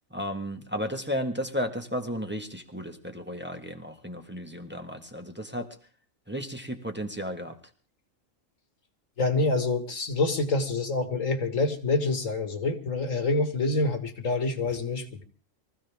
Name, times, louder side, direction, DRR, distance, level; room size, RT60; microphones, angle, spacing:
voice 1, 0.1-5.7 6.3-7.6, equal, 10° right, 4 dB, 1.5 m, -33 dB
voice 2, 9.2-15.2, left 3 dB, 70° left, 7 dB, 2.3 m, -27 dB
24.0 x 15.5 x 3.6 m, 0.40 s
omnidirectional pair, 1.4 m